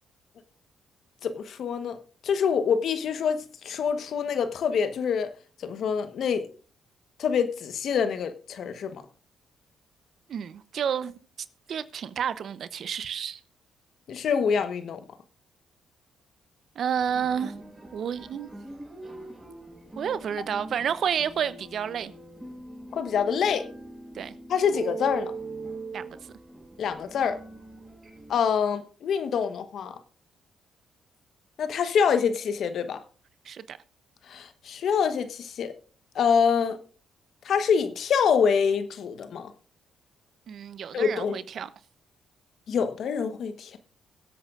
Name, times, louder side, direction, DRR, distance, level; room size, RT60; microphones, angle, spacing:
voice 1, 1.2-5.3 5.6-6.5 7.2-9.0 14.1-15.0 22.9-23.7 24.5-25.3 26.8-27.4 28.3-29.9 31.6-33.0 34.3-35.7 36.1-36.8 37.4-39.5 40.9-41.4 42.7-43.8, left 6 dB, 65° left, 1.2 m, -26 dB
voice 2, 10.3-11.1 11.7-13.4 16.8-17.6 17.9-18.5 19.9-22.1 24.1-24.3 25.9-26.2 33.4-33.8 40.5-41.7, right 8 dB, 65° right, 0.8 m, -30 dB
sound 1, 16.9-28.4, right 3 dB, 25° right, 4.5 m, -41 dB
23.0 x 8.2 x 2.5 m
supercardioid pair, 60°, 0 cm